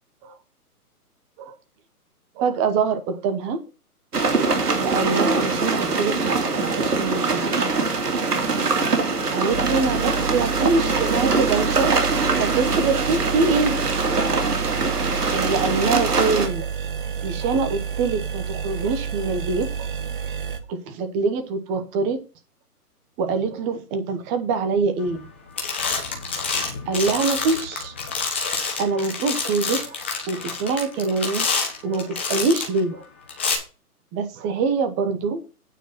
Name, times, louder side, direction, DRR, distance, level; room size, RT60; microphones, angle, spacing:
voice 1, 2.4-3.6 4.4-7.5 9.3-11.9 12.4-13.8 15.2-16.7 17.2-19.9 20.7-22.2 23.2-25.3 26.9-27.9 28.8-30.0 30.3-31.5 31.8-33.0 34.1-35.4, right 4 dB, 15° right, 9 dB, 0.9 m, -24 dB
sound 1, 4.1-16.5, right 3 dB, 80° right, 2.4 m, -23 dB
sound 2, 9.5-20.6, right 7 dB, 35° right, 1.3 m, -30 dB
sound 3, 25.1-25.3 25.6-32.8 33.3-33.5, left 4 dB, 10° left, 0.5 m, -27 dB
9.1 x 4.6 x 5.9 m, 0.33 s
hypercardioid pair, 140°, 46 cm